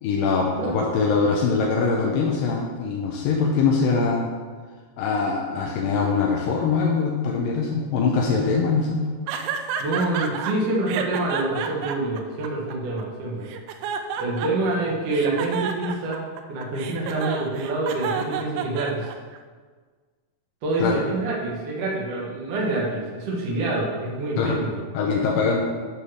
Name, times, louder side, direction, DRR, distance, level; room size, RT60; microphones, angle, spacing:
voice 1, 0.0-4.3 5.0-9.0 20.8-21.0 24.4-24.6 24.9-25.6, left 4 dB, 85° left, -1 dB, 2.5 m, -22 dB
voice 2, 0.6-0.9 9.8-13.5 14.2-19.1 20.6-24.8, right 2 dB, 55° right, -3 dB, 2.2 m, -26 dB
sound 1, 9.3-10.5 10.9-13.0 13.5-14.7 15.1-19.4, right 8 dB, 80° right, 1.8 m, -30 dB
9.5 x 3.4 x 6.2 m, 1.5 s
omnidirectional pair, 3.9 m